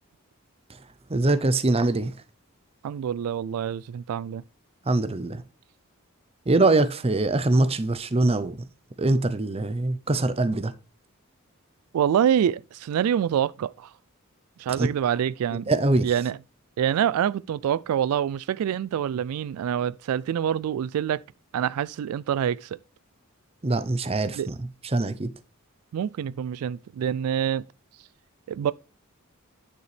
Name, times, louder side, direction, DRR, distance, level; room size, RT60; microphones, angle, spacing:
voice 1, 1.1-2.1 4.9-5.4 6.5-8.6 9.0-10.7 14.8-14.9 15.7-16.1 23.6-24.5 24.9-25.3, right 2 dB, 25° right, 0.7 m, -23 dB
voice 2, 2.8-4.4 11.9-13.9 14.6-15.7 16.0-16.4 16.8-21.2 21.5-22.8 24.3-24.5 25.9-27.6 28.5-28.7, right 9 dB, 85° right, 0.3 m, -26 dB
9.5 x 6.8 x 3.3 m
head